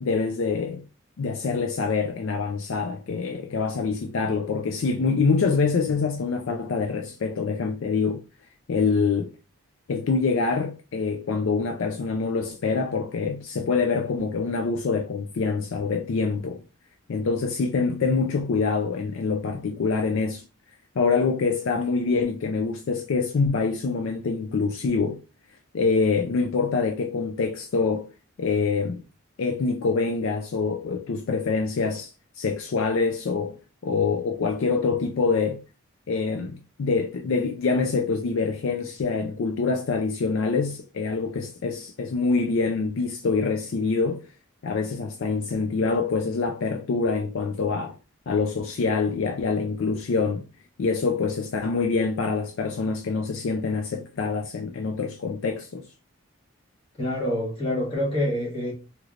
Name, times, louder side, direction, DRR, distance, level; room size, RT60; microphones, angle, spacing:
voice 1, 0.0-0.8 1.2-8.2 8.7-9.3 9.9-16.6 17.1-20.4 21.0-25.2 25.7-28.1 28.4-29.0 29.4-33.6 33.8-35.6 36.1-44.2 44.6-48.0 48.3-50.4 50.8-55.8, left 4 dB, 65° left, 0.4 m, -25 dB
voice 2, 57.0-58.7, left 1 dB, 25° left, 1.2 m, -26 dB
3.1 x 3.0 x 2.4 m
head